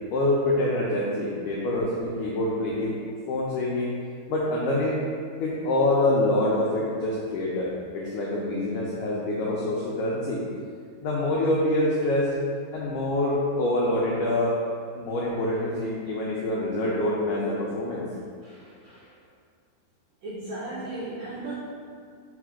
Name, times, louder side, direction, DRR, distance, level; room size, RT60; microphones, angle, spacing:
voice 1, 0.1-3.0 3.3-3.9 4.3-5.0 5.4-10.4 11.0-12.4 12.7-14.6 15.0-18.1, left 1 dB, 90° left, -5 dB, 1.7 m, -26 dB
voice 2, 18.4-19.2 20.2-21.5, right 2 dB, 75° right, -9 dB, 1.6 m, -37 dB
4.9 x 4.5 x 4.9 m, 2.1 s
omnidirectional pair, 4.6 m